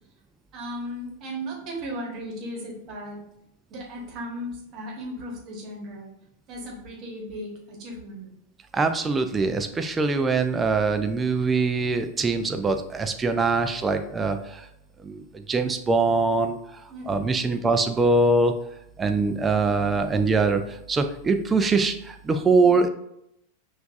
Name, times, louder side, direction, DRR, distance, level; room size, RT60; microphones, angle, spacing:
voice 1, 0.5-3.2 3.7-6.1 6.5-8.3 16.9-17.3, equal, 35° right, -1 dB, 1.2 m, -36 dB
voice 2, 8.7-14.6 15.0-16.6 17.1-18.5 19.0-20.6 20.9-22.9, right 3 dB, 15° right, 7 dB, 0.4 m, -23 dB
5.7 x 2.5 x 2.4 m, 0.79 s
figure-of-eight pair, 90°, 0 cm